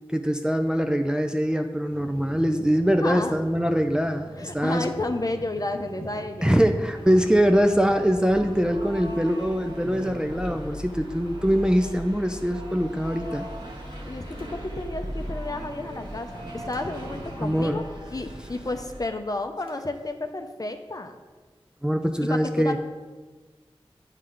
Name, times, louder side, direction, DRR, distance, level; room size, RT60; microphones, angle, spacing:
voice 1, 0.1-4.9 6.4-13.5 17.4-17.8 21.8-22.8, equal, 10° right, 5 dB, 0.4 m, -23 dB
sound 1, 1.9-9.0 9.7-11.0 12.4-12.5 14.4-14.5 16.3-16.8 19.7-19.8, right 1 dB, 70° right, 1.0 m, -43 dB
voice 2, 3.0-3.4 4.4-6.5 14.1-17.8 18.1-21.2 22.2-22.8, left 2 dB, 40° left, 6 dB, 0.6 m, -31 dB
sound 2, 6.9-19.1, equal, 50° right, 1.4 m, -38 dB
9.0 x 3.2 x 3.8 m, 1.4 s
wide cardioid pair, 50°, 10 cm